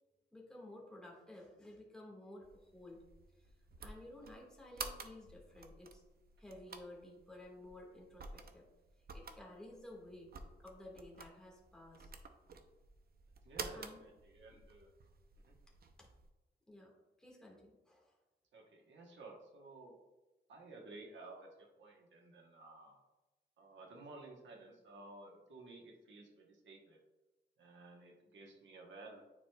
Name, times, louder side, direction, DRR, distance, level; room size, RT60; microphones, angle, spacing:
voice 1, 0.3-3.0 3.8-6.0 6.4-8.7 9.1-12.1 13.7-14.0 14.5-14.6 16.0-16.1 16.7-16.9 17.2-18.1, left 1 dB, 5° left, -3 dB, 1.6 m, -54 dB
sound 1, 2.4-16.3, right 4 dB, 55° right, 0.6 m, -52 dB
voice 2, 13.4-14.9 15.4-15.5 18.5-20.0 20.5-23.0 23.6-27.0 27.6-29.2, right 2 dB, 90° right, 1 dB, 1.1 m, -54 dB
9.3 x 4.5 x 2.3 m, 1.1 s
wide cardioid pair, 115°, 19 cm